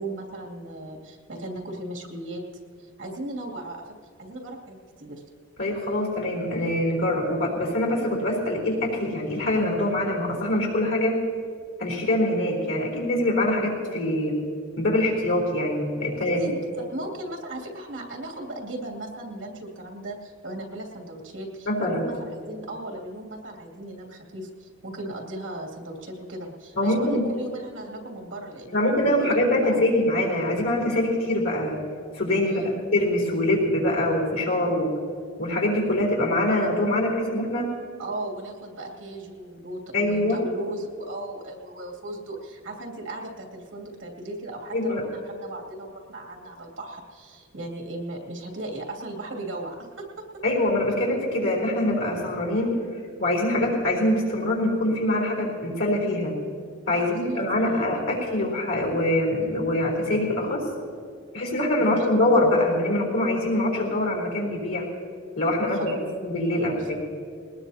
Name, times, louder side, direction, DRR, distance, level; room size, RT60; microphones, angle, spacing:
voice 1, 0.0-2.4 2.8-3.8 4.2-5.2 16.2-28.9 29.2-29.9 32.4-32.8 38.0-50.2 56.9-57.9 61.8-62.0 65.7-66.1 66.5-67.0, right 1 dB, 65° right, 0 dB, 2.7 m, -37 dB
voice 2, 5.6-11.2 11.8-14.4 14.8-16.4 21.7-22.1 26.8-27.3 28.7-31.9 32.1-32.6 32.9-35.0 35.4-37.7 39.9-40.4 44.7-45.0 50.4-52.8 53.2-56.3 56.9-60.7 61.3-64.9 65.3-67.0, left 1 dB, 85° left, -1 dB, 4.2 m, -24 dB
20.5 x 19.5 x 2.9 m, 2.1 s
head